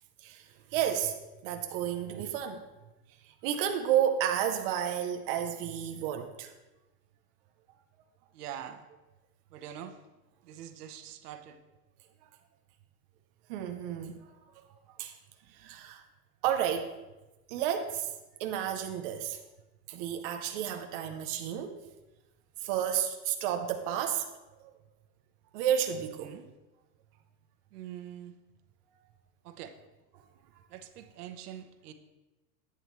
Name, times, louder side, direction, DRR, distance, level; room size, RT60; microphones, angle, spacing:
voice 1, 0.2-1.1 1.4-2.6 3.2-6.5 13.5-14.2 15.0-15.2 15.5-16.0 16.4-16.9 17.5-18.1 18.4-19.4 19.9-21.8 22.6-24.3 24.6-24.7 25.5-26.3, right 9 dB, 35° right, 5 dB, 0.6 m, -31 dB
voice 2, 8.3-8.9 9.5-10.0 10.4-11.6 26.2-26.5 27.7-28.4 29.4-29.8 30.7-31.9, right 10 dB, 70° right, 8 dB, 1.1 m, -44 dB
11.5 x 9.2 x 3.1 m, 1.1 s
supercardioid pair, 170°, 48 cm